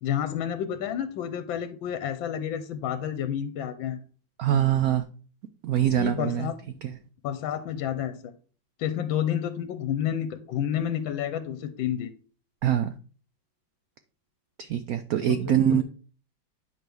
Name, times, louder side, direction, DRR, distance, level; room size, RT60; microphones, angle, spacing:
voice 1, 0.0-4.0 6.0-6.5 7.2-8.2 8.8-12.1 15.3-15.8, left 9 dB, 75° left, 10 dB, 1.4 m, -30 dB
voice 2, 4.4-5.0 5.6-6.5 6.8-6.9 12.6-12.9 14.6-15.8, right 10 dB, 85° right, 10 dB, 0.7 m, -24 dB
8.8 x 6.1 x 3.4 m, 0.39 s
omnidirectional pair, 2.2 m